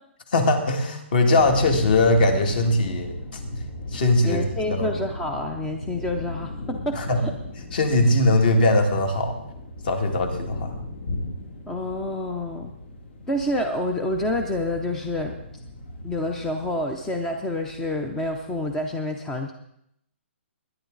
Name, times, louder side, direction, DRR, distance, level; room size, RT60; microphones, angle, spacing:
voice 1, 0.3-3.4 3.9-5.0 7.0-7.2 7.7-9.4 9.8-10.8, left 2 dB, 45° left, 5 dB, 2.3 m, -21 dB
sound 1, 1.4-19.0, left 1 dB, 65° left, 2.3 m, -36 dB
voice 2, 4.2-7.3 11.7-12.7 13.3-15.4 16.0-19.5, left 1 dB, 5° left, 4 dB, 0.5 m, -28 dB
21.5 x 10.5 x 3.9 m, 0.76 s
hypercardioid pair, 170°, 7 cm